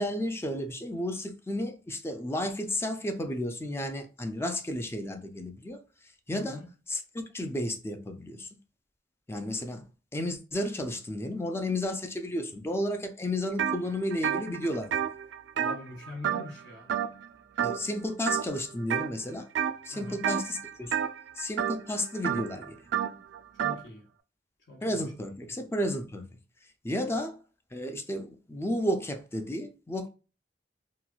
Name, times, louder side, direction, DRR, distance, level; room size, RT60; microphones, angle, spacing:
voice 1, 0.0-5.8 6.3-6.6 6.9-8.5 9.3-9.8 10.1-15.0 17.6-19.5 19.8-20.9 21.4-22.8 24.8-26.4 26.8-27.4 27.7-30.1, left 1 dB, 15° left, 0.4 m, -32 dB
voice 2, 6.3-6.7 15.5-16.9 19.9-20.3 23.6-24.1 24.7-25.1, left 2 dB, 70° left, 0.9 m, -44 dB
sound 1, 13.6-13.8 14.1-16.6 16.9-17.3 17.6-17.9 18.3-19.1 19.6-19.9 20.2-23.8, right 8 dB, 90° right, 0.3 m, -30 dB
2.9 x 2.3 x 2.3 m
head